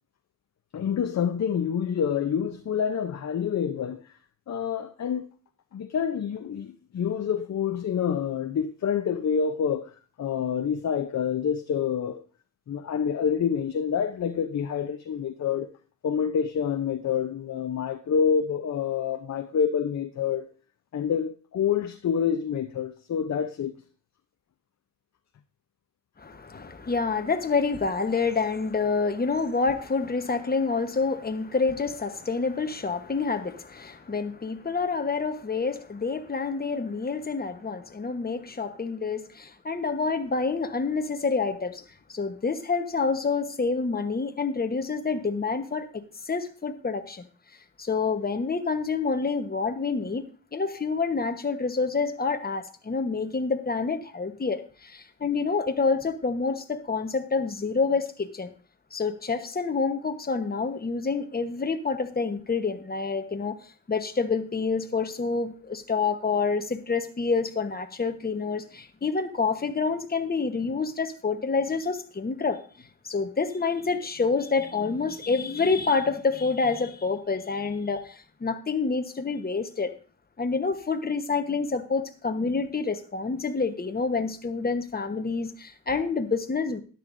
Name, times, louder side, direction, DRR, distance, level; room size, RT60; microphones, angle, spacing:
voice 1, 0.7-4.0 4.5-5.3 5.7-9.9 10.2-12.2 12.7-15.7 16.0-20.5 20.9-23.7, left 7 dB, 55° left, 0.7 m, -27 dB
voice 2, 26.2-41.8 42.1-47.2 47.8-50.3 50.5-58.5 58.9-63.6 63.9-72.6 73.0-79.9 80.4-86.8, left 4 dB, 30° left, 1.1 m, -28 dB
13.5 x 10.5 x 2.6 m
wide cardioid pair, 100°, 32 cm